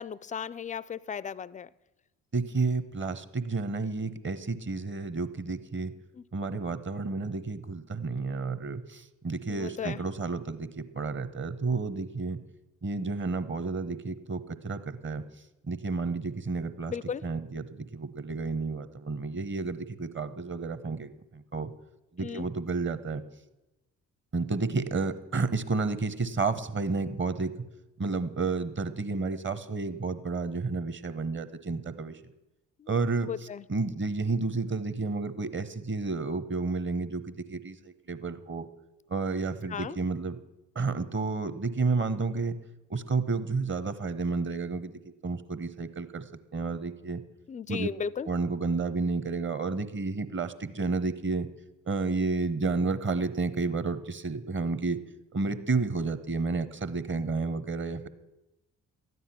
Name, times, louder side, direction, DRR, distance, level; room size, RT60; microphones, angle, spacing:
voice 1, 0.0-1.7 6.1-6.2 9.5-10.0 16.9-17.3 22.2-22.5 32.8-33.0 33.2-33.7 39.7-40.0 47.5-48.3, left 7 dB, 20° left, 0.4 m, -36 dB
voice 2, 2.3-5.9 6.3-12.4 12.8-15.2 15.7-16.9 17.2-21.7 22.2-23.2 24.3-27.5 28.0-32.2 32.9-33.3 33.7-38.7 39.1-40.4 40.7-42.6 42.9-46.2 46.5-47.2 47.7-47.9 48.3-51.5 51.9-55.0 55.3-58.1, right 4 dB, 30° right, 1.1 m, -31 dB
13.0 x 9.4 x 5.9 m
hypercardioid pair, 45°, 38 cm